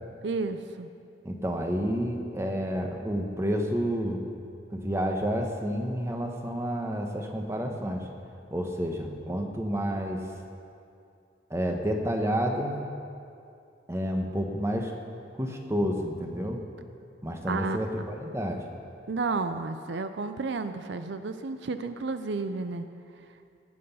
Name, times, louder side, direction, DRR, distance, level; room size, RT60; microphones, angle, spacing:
voice 1, 0.2-0.9 17.5-17.8 19.1-22.9, right 4 dB, 70° right, 9 dB, 0.5 m, -31 dB
voice 2, 1.2-4.2 4.7-8.1 8.5-10.2 11.5-12.8 13.9-14.9 15.3-16.6 17.2-18.6, equal, 15° right, 3 dB, 1.0 m, -30 dB
18.5 x 7.7 x 5.6 m, 2.5 s
head